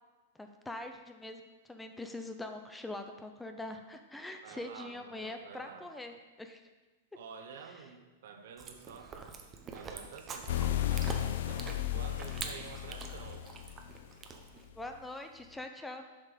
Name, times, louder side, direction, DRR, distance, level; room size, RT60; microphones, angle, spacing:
voice 1, 0.3-1.4 1.7-6.6 7.7-7.8 14.7-16.1, left 2 dB, 5° left, 6 dB, 0.6 m, -43 dB
voice 2, 4.4-5.9 7.1-9.1 9.7-13.5, right 6 dB, 70° right, 6 dB, 1.1 m, -49 dB
Chewing mastication, 8.6-14.7, right 5 dB, 20° right, 0.9 m, -45 dB
sound 1, 10.5-14.0, left 13 dB, 70° left, 0.5 m, -34 dB
7.4 x 5.3 x 5.1 m, 1.2 s
hypercardioid pair, 135°, 0 cm